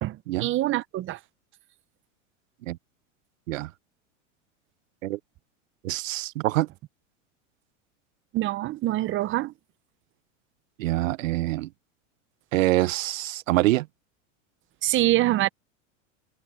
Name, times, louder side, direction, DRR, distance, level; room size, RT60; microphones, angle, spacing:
voice 1, 0.0-1.2 8.3-9.5 14.8-15.5, right 16 dB, 30° right, 0.7 m, -25 dB
voice 2, 5.8-6.7 10.8-11.7 12.5-13.9, right 17 dB, 85° right, 0.7 m, -25 dB
supercardioid pair, 120°, 38 cm